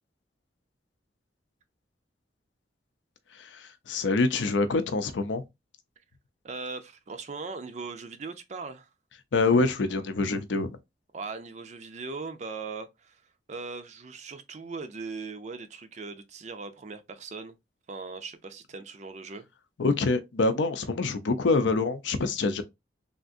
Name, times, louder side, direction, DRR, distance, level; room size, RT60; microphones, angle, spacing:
voice 1, 3.3-5.4 9.3-10.8 19.8-22.6, left 3 dB, 80° left, 0.5 m, -26 dB
voice 2, 6.4-8.9 11.1-17.6 17.9-19.5, right 4 dB, 40° right, 0.4 m, -39 dB
3.4 x 2.5 x 2.5 m
head